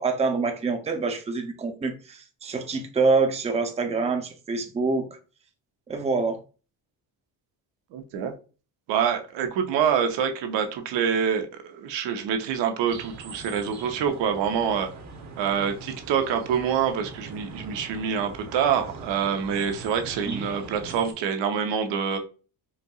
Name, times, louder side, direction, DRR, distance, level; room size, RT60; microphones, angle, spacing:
voice 1, 0.0-5.2 5.9-6.4 20.3-20.5, right 4 dB, 15° right, 0.6 m, -26 dB
voice 2, 7.9-8.3 8.9-14.9 15.4-22.2, right 7 dB, 75° right, 0.8 m, -26 dB
sound 1, 12.9-21.1, right 4 dB, 40° right, 0.9 m, -42 dB
4.3 x 2.6 x 2.3 m
cardioid pair, 85°, 44 cm